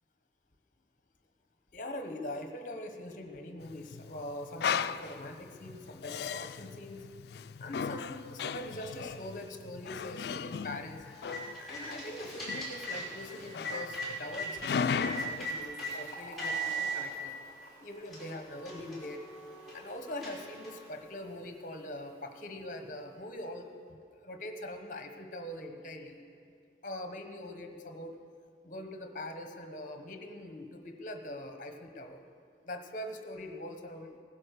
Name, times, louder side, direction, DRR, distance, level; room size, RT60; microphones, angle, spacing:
voice 1, 1.7-7.1 7.6-11.0 11.5-17.3 17.8-19.2 19.7-26.2 26.8-28.2 28.6-32.2 32.6-34.2, left 1 dB, 45° left, 5 dB, 1.2 m, -43 dB
Male speech man speaking, 3.6-15.5, left 6 dB, 65° left, 0.3 m, -37 dB
sound 1, 11.0-14.5 15.0-15.9 16.4-17.0 17.6-17.7 18.1-20.9, right 2 dB, ahead, 4.3 m, -39 dB
Fill (with liquid), 15.3-22.7, left 1 dB, 25° left, 4.4 m, -53 dB
17.0 x 9.9 x 6.6 m, 2.3 s
head